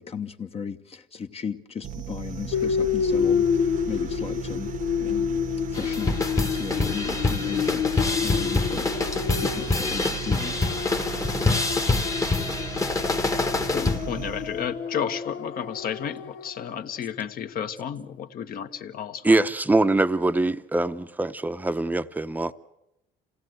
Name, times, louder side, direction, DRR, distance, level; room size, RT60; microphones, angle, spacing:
voice 1, 0.0-4.7 5.0-5.4 5.7-8.9 9.4-10.6, left 7 dB, 35° left, 1.0 m, -36 dB
sound 1, 1.8-14.8, right 9 dB, 50° right, 0.9 m, -37 dB
sound 2, 2.5-16.7, left 7 dB, 85° left, 0.8 m, -29 dB
sound 3, 5.7-14.1, left 3 dB, 20° left, 1.1 m, -26 dB
voice 2, 13.5-19.5, left 8 dB, 60° left, 1.4 m, -32 dB
voice 3, 19.2-22.5, right 2 dB, 10° right, 0.7 m, -23 dB
27.0 x 17.0 x 7.9 m
cardioid pair, 110°, 17 cm